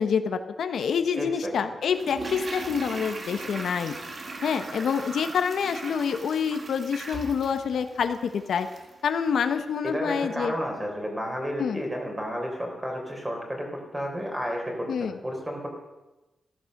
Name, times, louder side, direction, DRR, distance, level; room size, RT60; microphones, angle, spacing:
voice 1, 0.0-3.9 4.4-8.7 9.0-10.5 11.6-11.8 14.9-15.1, left 6 dB, 80° left, 8 dB, 1.0 m, -27 dB
voice 2, 1.1-1.7 9.8-15.7, equal, 15° right, 1 dB, 3.8 m, -32 dB
Toilet flush, 1.9-9.0 9.3-9.4, right 3 dB, 40° right, 2.0 m, -39 dB
15.0 x 14.0 x 6.6 m, 1.1 s
wide cardioid pair, 165°, 0 cm